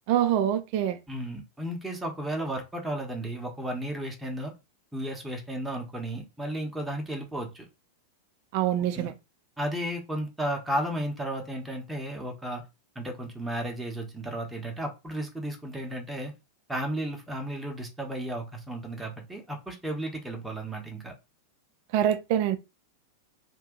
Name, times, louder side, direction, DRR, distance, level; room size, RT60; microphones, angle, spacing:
voice 1, 0.1-1.0 8.5-9.1 21.9-22.6, right 10 dB, 45° right, 0.4 m, -25 dB
voice 2, 1.1-4.5 4.9-7.7 8.8-9.1 9.6-12.6 12.9-16.3 16.7-21.1, right 1 dB, 5° right, 0.9 m, -34 dB
2.7 x 2.6 x 3.7 m
figure-of-eight pair, 90°, 0 cm